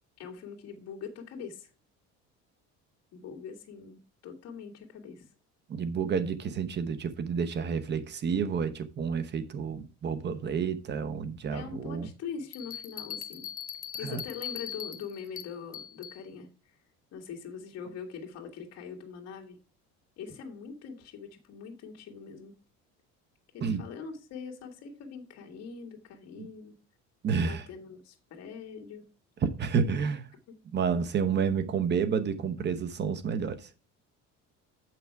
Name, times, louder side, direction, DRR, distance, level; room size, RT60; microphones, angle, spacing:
voice 1, 0.2-1.7 3.1-5.3 11.5-13.5 14.0-16.7 17.1-19.6 20.2-22.5 23.5-26.7 27.4-29.0, left 6 dB, 55° left, 2.0 m, -43 dB
voice 2, 5.7-12.1 14.0-14.2 23.6-23.8 26.4-26.5 27.2-27.6 29.6-30.3 30.7-33.7, right 6 dB, 35° right, 0.9 m, -30 dB
Bell, 12.5-16.2, left 8 dB, 30° left, 0.7 m, -40 dB
7.8 x 6.0 x 4.6 m
cardioid pair, 140°, 30 cm